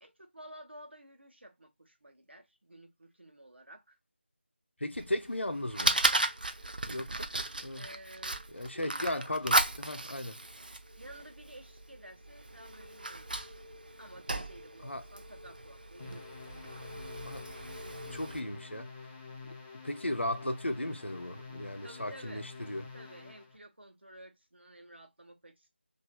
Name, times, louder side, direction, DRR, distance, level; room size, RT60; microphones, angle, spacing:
voice 1, 0.0-4.0 7.7-9.6 11.0-13.4 14.0-16.4 21.8-22.4 22.9-25.7, right 1 dB, 70° right, 1.0 m, -52 dB
voice 2, 4.8-6.0 6.9-7.3 7.6-7.8 8.5-10.4 14.8-15.0 17.3-17.4 18.1-18.9 19.8-22.8, left 1 dB, 75° left, 0.7 m, -36 dB
Fire, 5.0-18.4, right 2 dB, 50° right, 0.4 m, -35 dB
sound 1, 16.0-23.6, left 4 dB, 15° left, 0.5 m, -48 dB
3.2 x 2.6 x 2.3 m
figure-of-eight pair, 165°, 6 cm